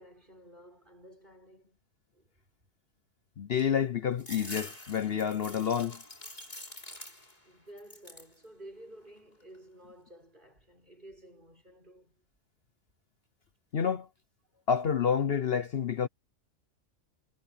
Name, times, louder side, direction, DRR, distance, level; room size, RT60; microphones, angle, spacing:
voice 1, 0.0-1.8 2.1-2.3 7.4-12.1 14.5-14.6, right 1 dB, 40° right, 6.6 m, -53 dB
voice 2, 3.4-6.0 13.7-14.1 14.7-16.1, left 7 dB, 55° left, 0.9 m, -29 dB
sound 1, 4.2-7.5 7.8-8.4 8.8-9.6, left 1 dB, 35° left, 4.7 m, -46 dB
omnidirectional pair, 1.3 m